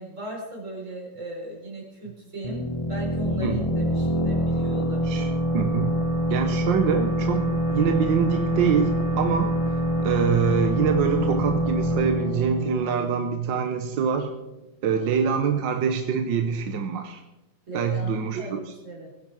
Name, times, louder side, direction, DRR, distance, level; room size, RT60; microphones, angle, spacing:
voice 1, 0.0-5.4 17.7-19.1, right 2 dB, 40° right, -2 dB, 5.2 m, -37 dB
sound 1, 2.4-13.9, equal, 25° left, 0.8 m, -25 dB
voice 2, 5.0-5.9 6.3-9.8 10.0-14.3 14.8-17.2 17.7-18.7, right 7 dB, 75° right, 6 dB, 1.6 m, -25 dB
21.5 x 10.5 x 4.8 m, 1.0 s
omnidirectional pair, 2.0 m